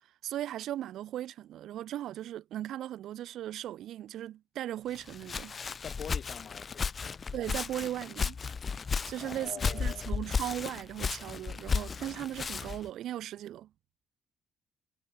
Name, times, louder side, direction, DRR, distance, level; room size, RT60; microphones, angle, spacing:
voice 1, 0.2-5.6 7.3-8.4 9.0-13.7, right 12 dB, 80° right, 3.1 m, -37 dB
Walk footsteps, 4.9-12.9, left 5 dB, 40° left, 0.9 m, -34 dB
voice 2, 5.8-7.2 9.2-10.2, left 8 dB, 55° left, 5.6 m, -45 dB
cardioid pair, 90°, 0 cm